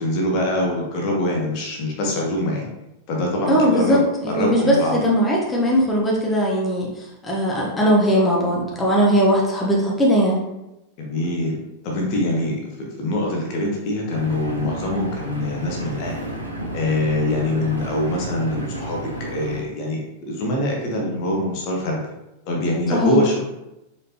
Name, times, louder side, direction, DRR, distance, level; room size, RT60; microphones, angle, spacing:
voice 1, 0.0-2.7 3.1-5.0 11.0-11.6 11.8-16.3 16.7-22.0 22.4-23.4, left 1 dB, 45° left, -1 dB, 0.9 m, -24 dB
voice 2, 3.5-10.4 22.9-23.2, equal, 10° left, -4 dB, 0.9 m, -19 dB
Engine, 14.1-19.6, right 1 dB, 80° right, 0.8 m, -31 dB
4.2 x 3.2 x 2.8 m, 0.92 s
figure-of-eight pair, 90°, 0 cm